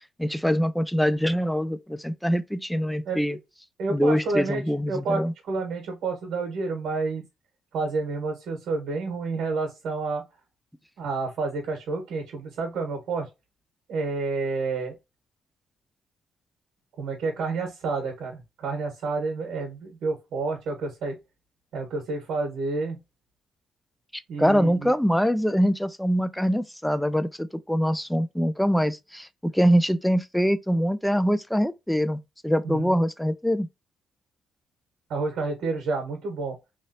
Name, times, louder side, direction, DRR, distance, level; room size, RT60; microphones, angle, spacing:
voice 1, 0.0-3.4 3.9-5.3 24.1-33.7, equal, 5° left, 0.4 m, -24 dB
voice 2, 3.8-4.6 4.9-7.2 7.7-10.2 11.0-13.3 13.9-14.9 17.0-21.1 21.7-23.0 24.3-24.9 32.6-33.0 35.1-36.5, right 3 dB, 75° right, 1.3 m, -29 dB
3.2 x 2.7 x 2.7 m
cardioid pair, 90°, 0 cm